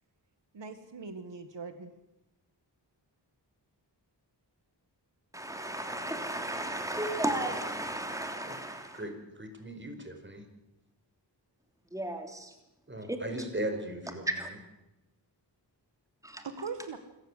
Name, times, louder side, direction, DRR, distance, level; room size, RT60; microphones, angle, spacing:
voice 1, 0.5-1.9 16.4-17.0, right 4 dB, 75° right, 9 dB, 1.7 m, -40 dB
voice 2, 5.3-9.0 11.9-12.5 13.1-13.4 14.3-14.5 16.2-16.4, right 1 dB, 5° right, 5 dB, 3.1 m, -34 dB
voice 3, 8.9-10.4 12.9-14.3, right 1 dB, 25° right, 6 dB, 4.8 m, -38 dB
27.0 x 14.5 x 8.1 m, 0.94 s
wide cardioid pair, 80°, 43 cm